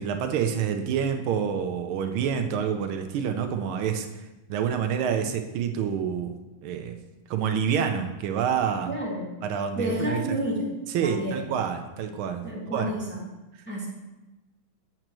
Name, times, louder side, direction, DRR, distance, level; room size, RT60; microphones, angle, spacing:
voice 1, 0.0-4.1 4.5-6.3 6.6-6.9 7.3-8.9 9.4-10.2 10.9-12.4 12.7-12.9, right 7 dB, 80° right, 6 dB, 1.5 m, -27 dB
voice 2, 8.9-9.3 9.8-10.6 11.0-11.4 12.4-13.2 13.7-13.9, equal, 5° left, -5 dB, 1.3 m, -30 dB
7.7 x 7.5 x 3.0 m, 1.1 s
omnidirectional pair, 2.3 m